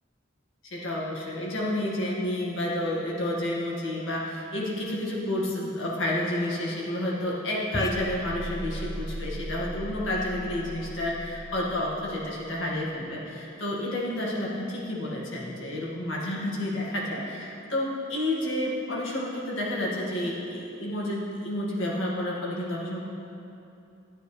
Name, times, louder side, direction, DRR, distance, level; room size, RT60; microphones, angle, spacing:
voice 1, 0.6-23.0, left 1 dB, 80° left, -4 dB, 1.9 m, -30 dB
sound 1, 7.7-12.4, equal, 20° left, 0.5 m, -37 dB
12.5 x 9.4 x 3.3 m, 2.8 s
head